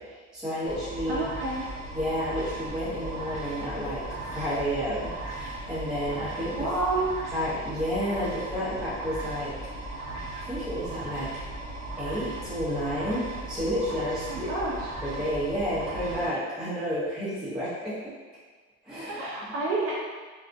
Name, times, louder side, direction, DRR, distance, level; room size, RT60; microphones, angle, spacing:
voice 1, 0.3-1.3 1.9-4.0 4.3-6.7 7.3-9.5 10.3-11.3 12.0-14.5 15.0-18.1 18.8-19.2, equal, ahead, -12 dB, 0.7 m, -31 dB
sound 1, 0.7-16.3, right 2 dB, 25° left, 1.2 m, -37 dB
voice 2, 1.1-1.7 6.6-7.1 14.2-14.9 19.1-19.9, right 2 dB, 50° right, -5 dB, 0.5 m, -29 dB
2.3 x 2.0 x 2.5 m, 1.4 s
supercardioid pair, 120°, 30 cm